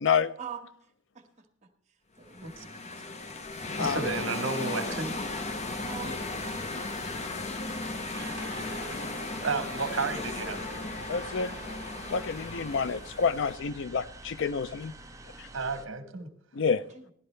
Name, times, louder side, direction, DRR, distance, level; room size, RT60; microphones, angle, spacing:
voice 1, 0.0-0.3 3.8-4.0 11.1-11.5 12.1-14.9 16.6-16.8, left 6 dB, 65° left, 15 dB, 0.5 m, -28 dB
sound 1, 2.2-13.6, left 3 dB, 35° left, 0.8 m, -36 dB
voice 2, 2.2-3.3 5.8-6.8 11.7-11.8 16.6-17.0, right 6 dB, 35° right, 2 dB, 1.6 m, -44 dB
voice 3, 3.8-5.2 8.9-9.0 9.4-10.6 15.5-16.3, right 4 dB, 80° right, 8 dB, 1.3 m, -32 dB
sound 2, 4.8-15.8, right 2 dB, 15° right, 0.7 m, -48 dB
sound 3, 8.1-13.1, right 5 dB, 55° right, 1.4 m, -47 dB
17.0 x 11.5 x 3.3 m, 0.63 s
head